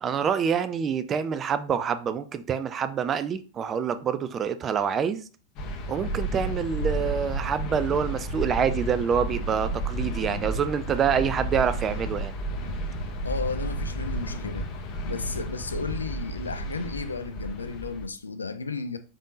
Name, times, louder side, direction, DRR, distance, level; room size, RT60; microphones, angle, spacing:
voice 1, 0.0-5.2 5.9-12.3, right 7 dB, 25° right, 0.4 m, -26 dB
sound 1, 5.6-18.1, right 1 dB, 40° left, 0.8 m, -32 dB
voice 2, 13.2-14.7 15.1-19.0, left 4 dB, 75° left, 0.4 m, -33 dB
5.1 x 3.5 x 2.6 m
figure-of-eight pair, 90°, 0 cm